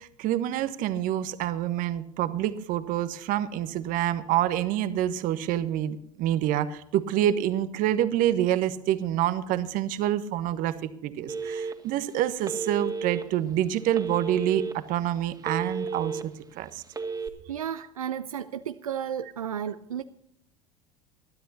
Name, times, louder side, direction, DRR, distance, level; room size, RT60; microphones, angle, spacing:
voice 1, 0.0-16.8, right 12 dB, 50° right, 12 dB, 1.2 m, -27 dB
Telephone, 11.3-12.0 12.4-13.2 13.9-14.7 15.1-16.2 16.9-17.3, right 4 dB, 20° right, 2.1 m, -32 dB
voice 2, 17.5-20.0, right 9 dB, 85° right, 11 dB, 0.5 m, -33 dB
21.0 x 12.5 x 2.8 m, 0.71 s
figure-of-eight pair, 70°, 18 cm